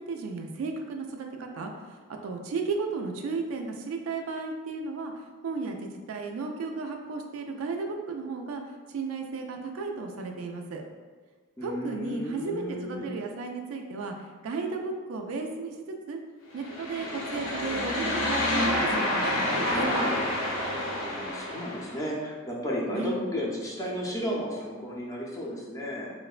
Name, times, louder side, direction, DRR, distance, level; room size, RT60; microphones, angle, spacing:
voice 1, 0.0-5.1 5.4-8.6 8.9-10.8 11.6-16.2 16.5-19.9 22.9-23.2, right 4 dB, 75° right, 3 dB, 0.3 m, -34 dB
voice 2, 11.6-13.1 21.0-26.1, equal, 15° left, -4 dB, 0.4 m, -33 dB
sound 1, 16.6-22.0, left 1 dB, 65° left, 0.5 m, -28 dB
2.9 x 2.1 x 2.4 m, 1.5 s
head